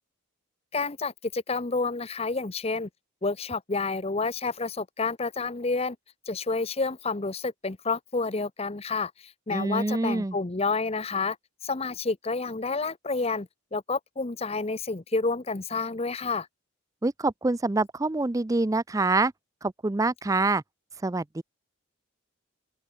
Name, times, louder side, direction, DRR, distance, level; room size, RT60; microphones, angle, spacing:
voice 1, 0.7-2.9 3.2-6.0 6.3-11.4 11.6-16.5, left 3 dB, 30° left, 0.8 m, -29 dB
voice 2, 9.5-10.4 17.0-19.3 19.6-20.6 21.0-21.4, right 2 dB, 15° right, 0.4 m, -26 dB
open air
head